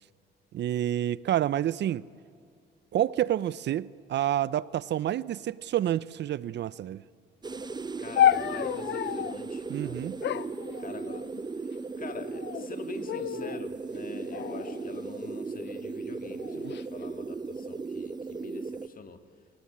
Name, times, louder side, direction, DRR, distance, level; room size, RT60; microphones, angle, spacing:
voice 1, 0.5-2.0 2.9-7.0 9.7-10.2, right 12 dB, 60° right, 0.6 m, -28 dB
sound 1, 7.4-18.9, right 4 dB, 20° right, 0.7 m, -37 dB
voice 2, 8.0-10.1 10.8-11.3 12.0-19.2, left 5 dB, 45° left, 2.0 m, -45 dB
sound 2, 8.2-9.4 10.2-11.4 12.2-12.7 13.1-13.6 14.3-15.6 16.4-16.8, left 11 dB, 65° left, 0.6 m, -30 dB
28.5 x 19.0 x 8.6 m
cardioid pair, 90°, 20 cm